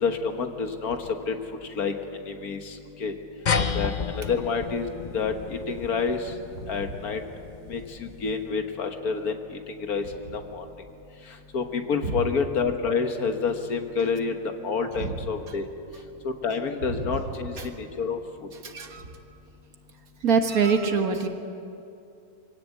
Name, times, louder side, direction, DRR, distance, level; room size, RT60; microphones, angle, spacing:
voice 1, 0.0-1.0 1.3-1.4 1.8-1.9 2.3-3.1 3.7-4.9 5.1-6.3 6.7-7.2 7.7-10.1 10.3-10.7 11.5-14.4 14.6-15.7 16.2-18.2, left 5 dB, 85° left, 6 dB, 1.9 m, -28 dB
sound 1, 3.5-8.3, left 5 dB, 40° left, 0.7 m, -32 dB
voice 2, 18.6-19.1 20.2-21.3, right 5 dB, 80° right, 5 dB, 2.0 m, -24 dB
24.0 x 16.5 x 8.4 m, 2.7 s
omnidirectional pair, 1.5 m